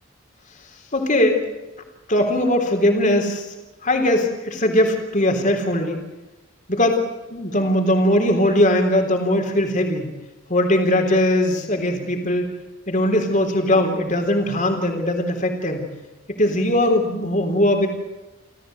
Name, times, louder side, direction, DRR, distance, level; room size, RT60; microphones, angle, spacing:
voice 1, 0.9-1.4 2.1-3.5 3.8-6.0 6.7-7.0 7.3-10.1 10.5-12.5 12.9-15.8 16.3-17.9, left 1 dB, 40° left, 4 dB, 3.6 m, -20 dB
30.0 x 14.0 x 8.0 m, 1.1 s
head